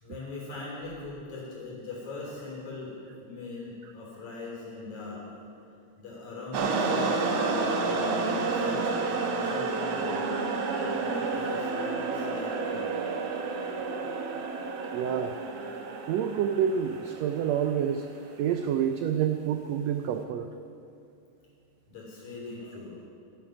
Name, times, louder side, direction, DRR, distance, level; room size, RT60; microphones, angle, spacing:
voice 1, 0.0-5.3 6.0-10.3 10.8-13.0 17.2-17.3 18.1-18.4 20.1-20.3 21.9-23.0, left 3 dB, 65° left, -4 dB, 4.9 m, -41 dB
sound 1, 6.5-18.0, right 4 dB, 65° right, 1.9 m, -30 dB
voice 2, 14.9-15.4 16.1-18.1 18.4-20.5, right 8 dB, 85° right, 7 dB, 1.5 m, -28 dB
13.0 x 12.0 x 6.0 m, 2.5 s
omnidirectional pair, 3.6 m